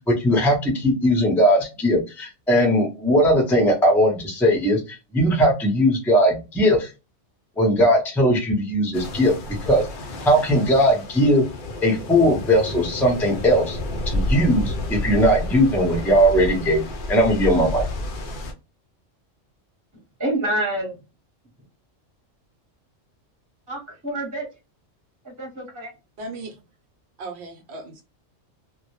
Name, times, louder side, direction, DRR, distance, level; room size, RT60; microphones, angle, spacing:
voice 1, 0.1-6.9 7.6-9.3 9.6-9.9 10.2-11.4 11.8-13.8 14.1-17.8, equal, ahead, 0.4 m, -19 dB
sound 1, 8.9-18.5, left 1 dB, 60° left, 0.5 m, -30 dB
voice 2, 20.2-21.0 23.7-24.5 25.2-25.9, right 1 dB, 15° right, 0.9 m, -27 dB
voice 3, 26.2-26.5 27.2-28.0, right 2 dB, 65° right, 0.9 m, -36 dB
2.2 x 2.1 x 2.9 m
omnidirectional pair, 1.3 m